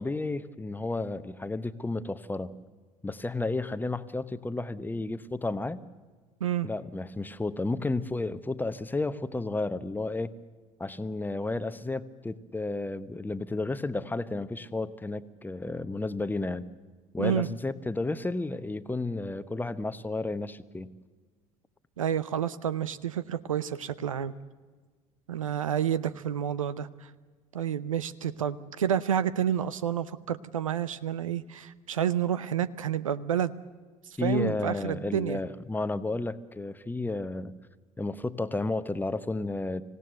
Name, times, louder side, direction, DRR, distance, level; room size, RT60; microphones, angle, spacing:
voice 1, 0.0-2.6 3.0-5.8 6.6-10.3 10.8-16.7 17.1-20.9 34.2-37.5 38.0-39.8, left 2 dB, 10° left, 13 dB, 1.0 m, -32 dB
voice 2, 22.0-24.3 25.3-27.1 27.5-33.5 34.1-35.4, right 9 dB, 80° right, 17 dB, 0.7 m, -29 dB
26.0 x 16.5 x 7.9 m, 1.4 s
figure-of-eight pair, 60°, 17 cm